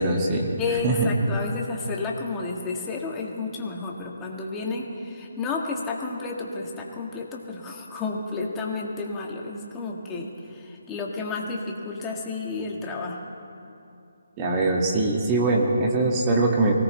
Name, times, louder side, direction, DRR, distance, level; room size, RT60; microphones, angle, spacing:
voice 1, 0.0-0.5 0.8-1.1 14.4-16.7, right 2 dB, 25° right, 0 dB, 2.0 m, -22 dB
voice 2, 0.6-13.2, left 3 dB, 15° left, -1 dB, 1.8 m, -31 dB
24.0 x 18.0 x 3.3 m, 2.7 s
figure-of-eight pair, 155°, 0 cm